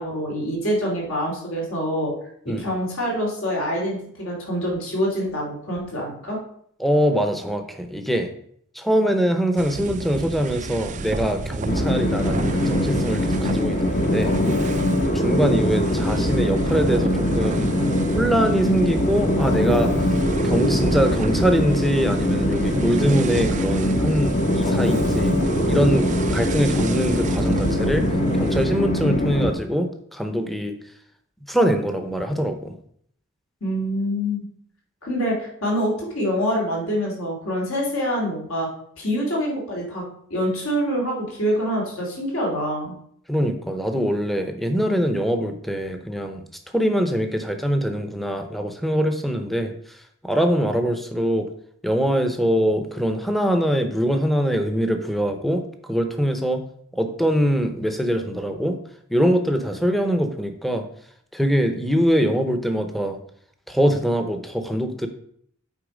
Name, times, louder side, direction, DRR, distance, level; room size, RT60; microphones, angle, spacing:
voice 1, 0.0-2.1 2.4-6.4 33.6-34.5 35.0-38.7 39.0-40.0 40.3-42.9, equal, 70° left, -2 dB, 2.9 m, -25 dB
voice 2, 6.8-8.3 8.7-14.3 15.0-17.7 18.1-19.9 20.4-25.4 25.7-28.1 28.3-30.7 31.5-32.8 43.3-46.4 46.7-49.7 50.2-51.5 51.8-56.6 56.9-58.8 59.1-60.8 61.3-63.2 63.7-65.1, equal, ahead, 6 dB, 0.8 m, -23 dB
sound 1, 9.6-28.7, right 3 dB, 35° right, 0.4 m, -31 dB
Train, 11.7-29.5, left 1 dB, 35° left, 0.9 m, -22 dB
8.2 x 4.7 x 5.1 m, 0.67 s
head